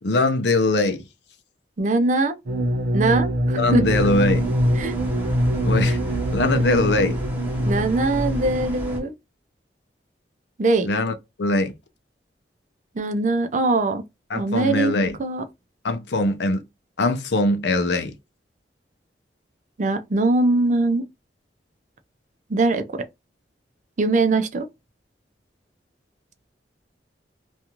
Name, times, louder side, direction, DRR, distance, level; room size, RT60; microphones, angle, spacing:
voice 1, 0.0-1.0 3.5-4.5 5.6-6.0 6.3-7.2 10.8-11.7 14.3-15.2 15.8-16.6 17.0-18.1, left 2 dB, 75° left, 0.6 m, -22 dB
voice 2, 1.8-2.3 2.9-3.8 4.8-5.0 7.6-9.1 10.6-10.9 13.0-14.0 14.3-14.9 15.2-15.4 19.8-21.0 22.5-22.8 24.0-24.7, right 2 dB, 45° right, 0.5 m, -21 dB
sound 1, 2.5-8.7, equal, 60° right, 0.9 m, -23 dB
sound 2, 3.9-9.0, equal, 10° right, 0.7 m, -33 dB
2.5 x 2.3 x 2.9 m
head